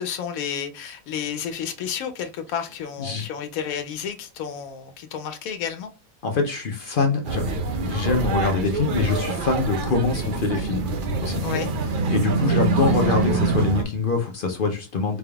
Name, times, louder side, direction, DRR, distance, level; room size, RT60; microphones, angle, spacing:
voice 1, 0.0-5.9 11.4-11.7, left 8 dB, 90° left, 8 dB, 1.1 m, -31 dB
voice 2, 6.2-10.9 11.2-11.4 12.1-15.2, left 4 dB, 55° left, 4 dB, 0.6 m, -24 dB
sound 1, 7.2-13.8, right 3 dB, 55° right, 0.6 m, -25 dB
4.1 x 3.4 x 2.3 m, 0.30 s
omnidirectional pair, 1.4 m